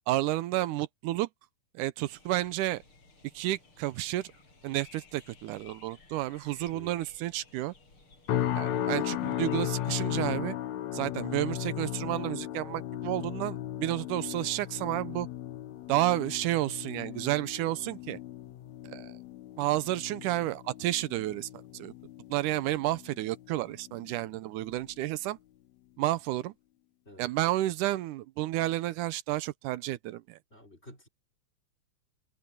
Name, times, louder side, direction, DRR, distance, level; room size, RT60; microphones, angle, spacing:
voice 1, 0.1-1.3 1.7-2.8 3.3-4.3 4.6-7.7 8.6-10.6 10.9-15.3 15.9-18.2 18.8-19.1 19.6-21.9 22.3-25.4 26.0-26.5 27.2-30.4, right 15 dB, 85° right, 2.3 m, -31 dB
sound 1, 2.0-10.3, left 5 dB, 40° left, 8.1 m, -57 dB
sound 2, 8.3-23.5 23.8-24.2 24.7-24.9, left 12 dB, 70° left, 2.2 m, -36 dB
voice 2, 30.5-31.1, left 1 dB, 20° left, 5.2 m, -50 dB
omnidirectional pair, 3.5 m